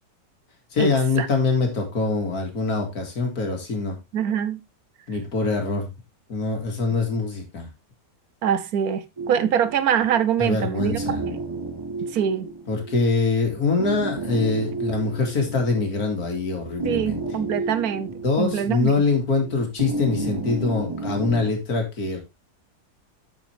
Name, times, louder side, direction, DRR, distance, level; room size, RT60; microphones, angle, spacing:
voice 1, 0.7-4.0 5.1-5.9 6.3-7.7 10.4-11.3 12.7-17.2 18.2-22.2, left 4 dB, 60° left, 2.9 m, -24 dB
voice 2, 4.1-4.6 8.4-11.4 12.1-12.5 16.8-18.1 18.4-18.9, right 8 dB, 65° right, 1.2 m, -24 dB
sound 1, 9.2-21.5, right 3 dB, 20° right, 0.7 m, -32 dB
8.2 x 7.7 x 3.4 m
omnidirectional pair, 1.8 m